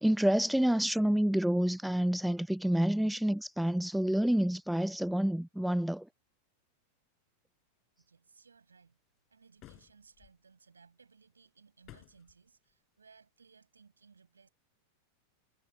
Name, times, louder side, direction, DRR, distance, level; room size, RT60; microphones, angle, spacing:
voice 1, 0.0-6.1, right 1 dB, ahead, 0.5 m, -28 dB
voice 2, 8.0-9.0 9.3-14.5, right 5 dB, 75° right, 7.3 m, -62 dB
sound 1, 9.6-10.3 11.8-12.4, left 17 dB, 35° left, 4.8 m, -55 dB
figure-of-eight pair, 90°, 0 cm